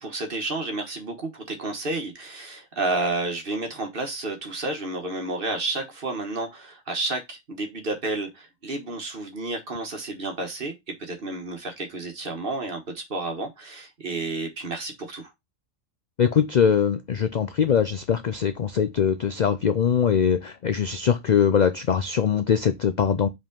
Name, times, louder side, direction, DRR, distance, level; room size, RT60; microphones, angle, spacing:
voice 1, 0.0-15.3, right 2 dB, 45° right, 1.5 m, -31 dB
voice 2, 16.2-23.3, left 7 dB, 60° left, 0.4 m, -22 dB
5.2 x 3.8 x 5.1 m
omnidirectional pair, 1.3 m